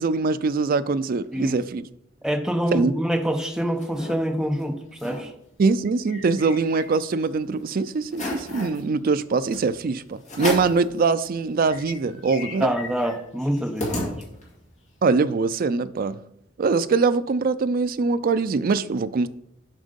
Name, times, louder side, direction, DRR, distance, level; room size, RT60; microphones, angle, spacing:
voice 1, 0.0-1.8 2.7-2.9 5.6-12.7 15.0-16.2 16.6-19.3, right 4 dB, 45° right, 0.4 m, -23 dB
voice 2, 2.2-5.3 12.6-14.2, equal, 5° right, 0.7 m, -26 dB
sound 1, 3.3-4.1 4.6-4.7 4.9-5.2 5.6-7.2 7.6-7.7 8.1-8.8 9.5-9.7 10.2-10.8 11.3-11.4 11.6-14.6, left 2 dB, 35° left, 2.0 m, -34 dB
7.5 x 5.2 x 5.2 m
head